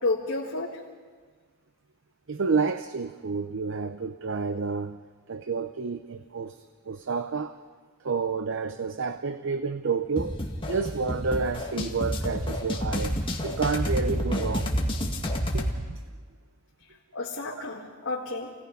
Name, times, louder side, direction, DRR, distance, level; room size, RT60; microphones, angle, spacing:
voice 1, 0.0-0.8 17.1-18.5, left 3 dB, 60° left, -5 dB, 2.3 m, -31 dB
voice 2, 2.3-5.0 5.3-7.6 8.0-10.4 10.7-13.2 13.4-14.8 15.5-16.0 17.5-17.6, right 4 dB, 60° right, 10 dB, 0.6 m, -30 dB
sound 1, 10.2-15.8, equal, 25° left, 2.0 m, -29 dB
28.5 x 18.0 x 5.4 m, 1.5 s
head